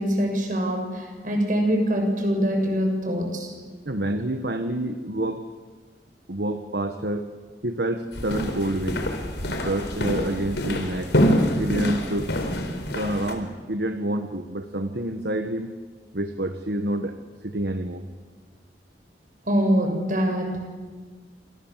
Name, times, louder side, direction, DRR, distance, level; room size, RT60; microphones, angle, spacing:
voice 1, 0.0-3.5 19.4-20.7, equal, 50° right, 3 dB, 6.7 m, -24 dB
voice 2, 3.8-5.5 6.3-7.3 7.6-9.1 9.5-11.1 11.6-12.3 12.9-15.8 16.1-17.2 17.4-18.0, right 1 dB, 65° right, 7 dB, 1.4 m, -28 dB
sound 1, 8.1-13.3, equal, 80° left, 4.5 m, -26 dB
28.5 x 27.0 x 7.4 m, 1.5 s
head